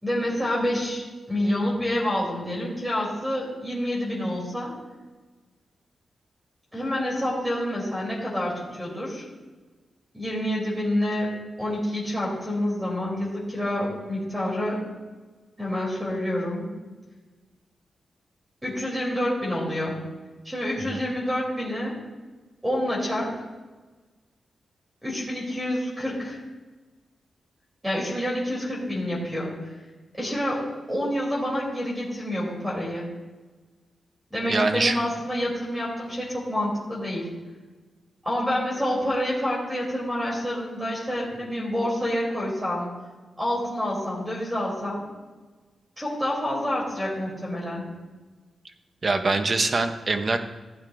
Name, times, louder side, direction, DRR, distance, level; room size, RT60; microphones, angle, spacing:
voice 1, 0.0-4.7 6.7-9.3 10.1-14.8 15.6-16.7 18.6-20.0 20.4-22.0 22.6-23.3 25.0-26.4 27.8-29.5 30.1-33.1 34.3-37.3 38.2-42.9 43.4-45.0 46.0-47.9, left 1 dB, 10° right, -5 dB, 2.8 m, -28 dB
voice 2, 34.5-35.0 49.0-50.4, right 3 dB, 35° right, 7 dB, 0.7 m, -23 dB
15.5 x 8.6 x 2.5 m, 1.3 s
wide cardioid pair, 175°, 0 cm